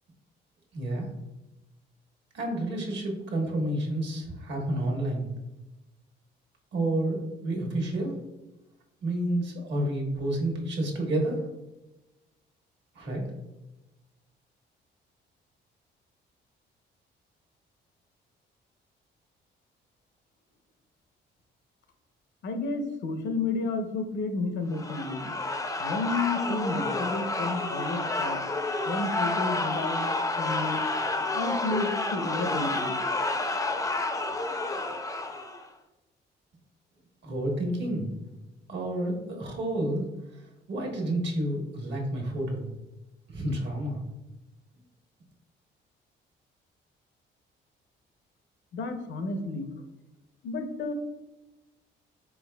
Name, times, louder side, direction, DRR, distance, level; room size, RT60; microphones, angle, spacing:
voice 1, 0.7-1.1 2.3-5.3 6.7-8.2 9.0-11.4 12.9-13.2 37.2-38.1 38.7-40.1 40.3-40.4 40.7-42.7 43.3-44.0, right 1 dB, 65° right, 0 dB, 1.3 m, -30 dB
voice 2, 22.4-25.3 25.8-28.4 28.9-30.1 30.4-30.8 31.3-33.0 48.7-49.7 50.4-50.9, left 3 dB, 65° left, 6 dB, 0.7 m, -31 dB
sound 1, 24.7-35.7, left 2 dB, 15° left, 0.5 m, -30 dB
4.6 x 4.0 x 2.2 m, 1.0 s
cardioid pair, 90°, 20 cm